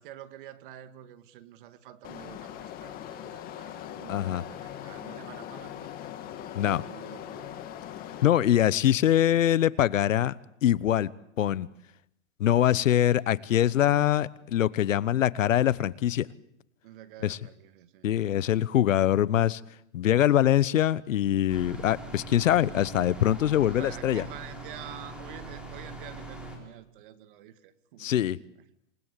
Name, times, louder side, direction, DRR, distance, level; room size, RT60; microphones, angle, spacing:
voice 1, 0.0-6.1 6.6-7.8 16.8-18.1 23.6-28.3, right 12 dB, 40° right, 2.0 m, -48 dB
sound 1, 2.0-8.2, left 11 dB, 25° left, 2.1 m, -41 dB
voice 2, 4.1-4.4 6.6-6.8 8.2-10.3 10.6-11.1 11.4-11.7 12.4-16.3 17.2-17.4 18.0-19.6 19.9-24.2 28.0-28.4, left 11 dB, 75° left, 1.1 m, -23 dB
sound 2, 21.5-26.6, right 2 dB, ahead, 4.5 m, -42 dB
28.0 x 20.0 x 8.3 m
hypercardioid pair, 155°, 39 cm